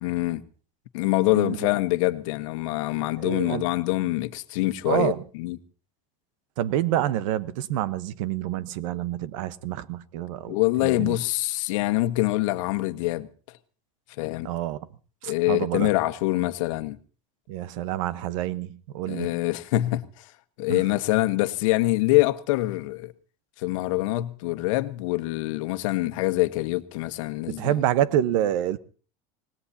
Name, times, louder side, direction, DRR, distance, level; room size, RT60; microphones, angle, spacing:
voice 1, 0.0-0.4 0.9-5.6 10.5-13.3 14.2-14.5 15.2-17.0 19.1-20.3 20.6-23.1 23.6-27.7, left 18 dB, 80° left, 1.2 m, -25 dB
voice 2, 3.2-3.6 4.9-5.2 6.6-10.6 10.8-11.1 14.4-14.8 15.2-15.9 17.5-19.4 20.7-20.8 27.5-28.8, right 12 dB, 80° right, 1.1 m, -27 dB
26.0 x 19.0 x 2.8 m
cardioid pair, 150°, 16 cm